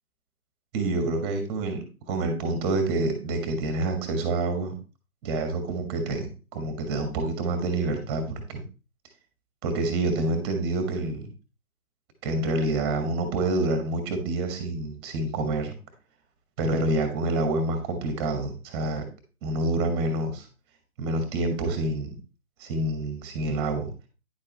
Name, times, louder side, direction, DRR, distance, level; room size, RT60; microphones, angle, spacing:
voice 1, 0.7-4.7 5.2-8.6 9.6-11.3 12.2-15.7 16.6-19.0 19.4-20.5 21.0-22.2 22.6-23.9, right 2 dB, 20° right, 7 dB, 1.6 m, -27 dB
10.0 x 7.5 x 3.3 m, 0.32 s
figure-of-eight pair, 140°, 43 cm